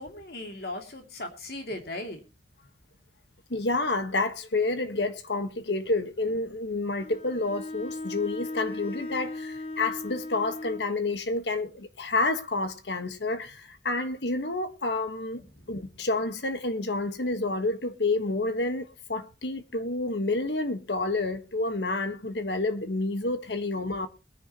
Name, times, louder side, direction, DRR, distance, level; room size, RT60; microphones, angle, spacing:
voice 1, 0.0-2.2 15.5-15.7, left 1 dB, 60° left, 2.8 m, -38 dB
voice 2, 3.5-15.4 15.7-24.1, left 2 dB, 85° left, 1.5 m, -29 dB
Bowed string instrument, 7.0-10.9, left 2 dB, 35° left, 0.7 m, -37 dB
22.0 x 10.0 x 3.1 m
head